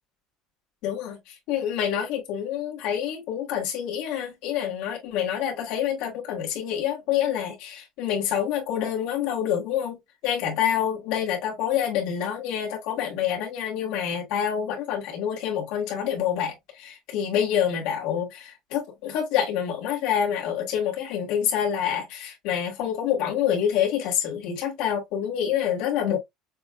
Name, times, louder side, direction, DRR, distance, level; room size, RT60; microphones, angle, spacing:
voice 1, 0.8-26.2, left 9 dB, 65° left, 1.8 m, -27 dB
6.6 x 2.4 x 2.4 m
cardioid pair, 180°, 0 cm